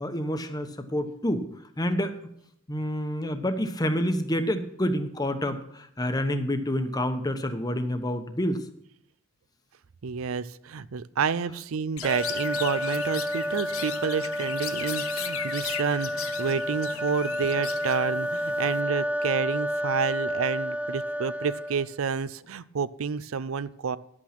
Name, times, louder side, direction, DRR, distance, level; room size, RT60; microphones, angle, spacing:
voice 1, 0.0-1.5 1.8-2.1 2.7-8.6, equal, 20° left, 8 dB, 1.0 m, -28 dB
voice 2, 10.0-24.0, right 6 dB, 75° right, 17 dB, 0.5 m, -29 dB
Chirp tweet, 12.0-18.8, left 9 dB, 90° left, 0.9 m, -38 dB
sound 1, 12.0-22.0, equal, 5° right, 0.4 m, -30 dB
11.5 x 8.6 x 5.9 m, 0.73 s
head